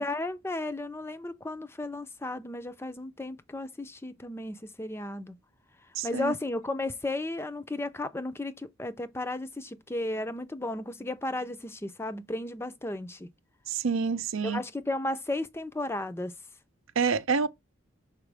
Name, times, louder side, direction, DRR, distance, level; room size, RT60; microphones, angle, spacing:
voice 1, 0.0-5.4 6.0-13.3 14.4-16.3, left 2 dB, 10° left, 0.4 m, -34 dB
voice 2, 6.0-6.3 13.7-14.6 17.0-17.5, right 5 dB, 90° right, 0.6 m, -27 dB
6.0 x 4.7 x 3.4 m
head